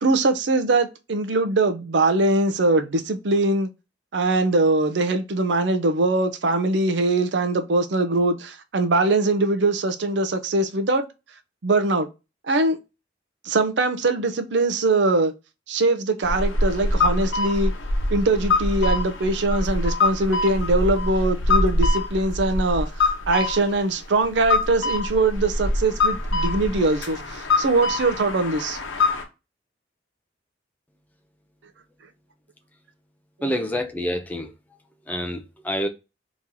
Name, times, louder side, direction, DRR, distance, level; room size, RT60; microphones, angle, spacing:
voice 1, 0.0-3.7 4.1-11.0 11.6-12.1 12.5-12.8 13.4-15.3 15.7-17.7 18.1-28.8 33.4-33.5, right 2 dB, 65° right, 0.6 m, -22 dB
sound 1, 16.2-29.2, left 2 dB, 85° left, 0.8 m, -24 dB
voice 2, 33.4-34.5 35.1-35.9, equal, 10° left, 0.5 m, -27 dB
3.0 x 2.7 x 3.6 m
head